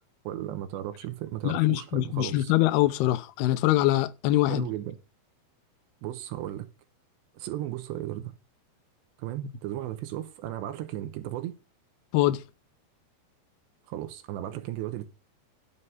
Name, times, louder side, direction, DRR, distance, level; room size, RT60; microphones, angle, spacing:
voice 1, 0.2-2.5 4.5-5.0 6.0-6.7 7.3-8.3 9.2-11.6 13.9-15.1, right 13 dB, 80° right, 3.0 m, -35 dB
voice 2, 1.4-4.7 12.1-12.4, left 15 dB, 80° left, 2.5 m, -23 dB
11.0 x 6.5 x 5.5 m
omnidirectional pair, 5.1 m